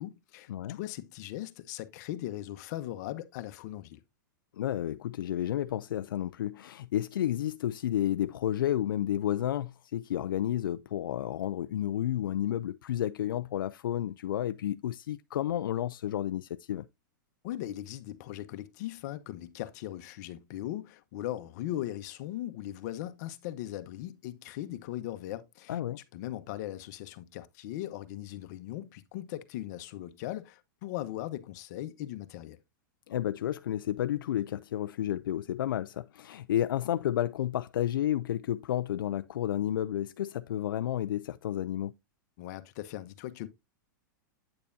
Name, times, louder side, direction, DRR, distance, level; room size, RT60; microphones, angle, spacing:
voice 1, 0.0-4.0 17.4-25.8 26.1-32.6 42.4-43.5, left 14 dB, 55° left, 1.0 m, -39 dB
voice 2, 4.5-16.9 25.7-26.0 33.1-41.9, left 11 dB, 85° left, 0.4 m, -31 dB
8.7 x 6.8 x 2.6 m
hypercardioid pair, 135°, 11 cm